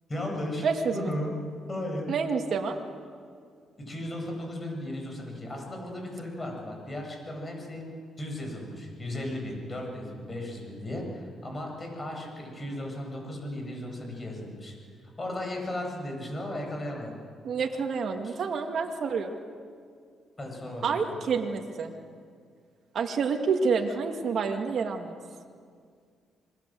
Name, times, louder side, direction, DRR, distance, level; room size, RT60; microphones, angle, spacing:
voice 1, 0.1-1.3 1.7-2.1 3.8-7.8 8.2-14.7 15.2-17.1 18.2-18.4 20.4-21.0, left 1 dB, 25° left, 1 dB, 8.0 m, -35 dB
voice 2, 0.6-1.2 2.1-2.8 17.4-19.4 20.8-21.9 22.9-25.2, right 5 dB, 55° right, 3 dB, 2.1 m, -28 dB
26.5 x 21.5 x 7.7 m, 2.1 s
cardioid pair, 100°, 0 cm